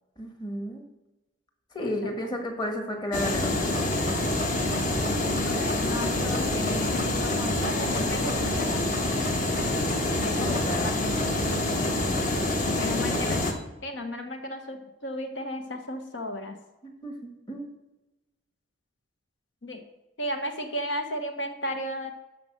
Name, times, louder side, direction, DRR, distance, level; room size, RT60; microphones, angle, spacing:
voice 1, 0.2-0.8 1.7-3.9 10.5-11.0 12.8-13.4 16.8-17.7, left 1 dB, 20° left, 3 dB, 1.5 m, -33 dB
voice 2, 1.8-2.1 4.6-4.8 5.3-8.9 10.2-10.9 12.8-13.4 13.8-16.6 19.6-19.8 20.2-22.1, left 1 dB, 65° left, 5 dB, 1.1 m, -34 dB
sound 1, 3.1-13.5, left 1 dB, 40° left, 1.4 m, -26 dB
13.0 x 4.7 x 6.6 m, 1.0 s
head